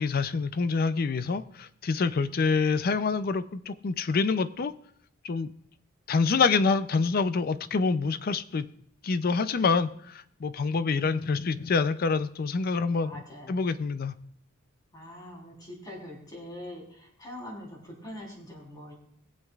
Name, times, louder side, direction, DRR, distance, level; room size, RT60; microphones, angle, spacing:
voice 1, 0.0-4.7 5.2-5.5 6.1-8.7 9.0-13.2 13.5-14.1, left 4 dB, 45° left, 14 dB, 0.4 m, -26 dB
voice 2, 13.0-13.6 14.9-18.9, left 1 dB, 20° left, -3 dB, 3.5 m, -44 dB
21.5 x 7.5 x 2.4 m, 0.68 s
head